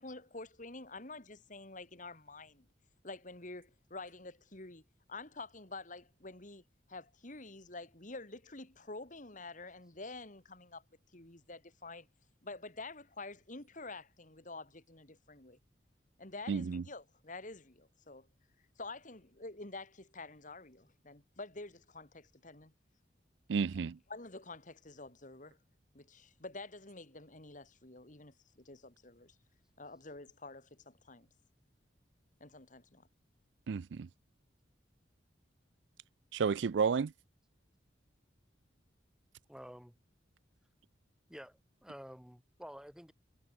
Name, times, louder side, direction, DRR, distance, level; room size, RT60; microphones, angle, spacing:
voice 1, 0.0-2.7 3.0-4.8 5.1-6.6 6.9-10.8 11.1-12.1 12.4-15.6 16.2-18.3 18.8-22.7 24.1-25.6 25.9-29.3 29.8-31.3 32.4-33.1, left 3 dB, 45° left, 2.9 m, -48 dB
voice 2, 16.5-16.8 23.5-24.0 33.7-34.1 36.3-37.1, right 6 dB, 70° right, 0.4 m, -31 dB
voice 3, 39.5-40.0 41.3-43.1, equal, 5° right, 6.3 m, -50 dB
head